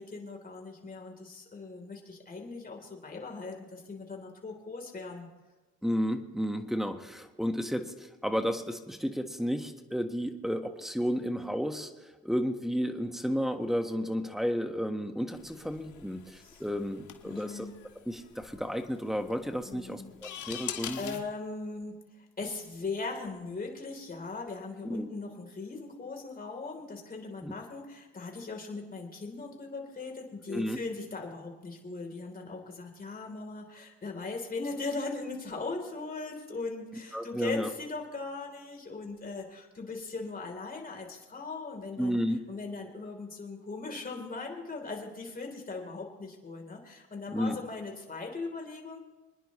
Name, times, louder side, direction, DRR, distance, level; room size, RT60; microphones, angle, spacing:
voice 1, 0.0-5.3 16.4-16.6 17.2-17.7 19.7-42.2 42.5-49.0, left 3 dB, 30° left, 1 dB, 3.6 m, -39 dB
voice 2, 5.8-17.7 18.0-21.2 24.8-25.1 27.4-27.5 30.5-30.8 37.1-37.7 42.0-42.4 47.3-47.6, equal, ahead, 6 dB, 1.4 m, -32 dB
sound 1, 15.3-21.2, left 10 dB, 80° left, 1.5 m, -44 dB
26.0 x 10.5 x 3.2 m, 1.2 s
cardioid pair, 90°, 30 cm